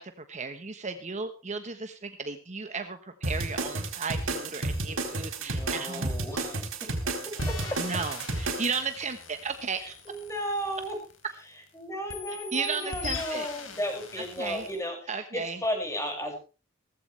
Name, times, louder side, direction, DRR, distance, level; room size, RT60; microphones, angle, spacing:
voice 1, 0.0-6.1 7.8-9.9 12.5-13.5 14.4-14.7 15.1-15.6, right 4 dB, 35° right, 8 dB, 1.2 m, -34 dB
sound 1, 3.2-8.8, right 2 dB, 75° right, 4.1 m, -31 dB
voice 2, 4.6-5.0 5.4-6.9 7.2-8.0 9.8-10.9 11.7-16.3, equal, 15° left, 2 dB, 6.3 m, -35 dB
sound 2, 7.4-11.7 12.1-14.8, left 5 dB, 80° left, 4.0 m, -42 dB
17.5 x 15.0 x 3.3 m, 0.33 s
head